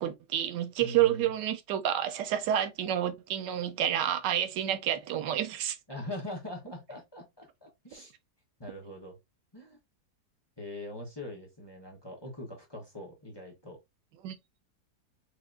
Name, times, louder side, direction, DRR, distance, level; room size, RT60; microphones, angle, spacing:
voice 1, 0.0-5.8 14.2-14.4, right 11 dB, 90° right, 1.3 m, -29 dB
voice 2, 0.8-1.3 5.9-8.1 8.6-9.2 9.5-9.8 10.6-13.8, left 1 dB, 15° left, 1.0 m, -42 dB
4.8 x 2.9 x 2.5 m
omnidirectional pair, 1.8 m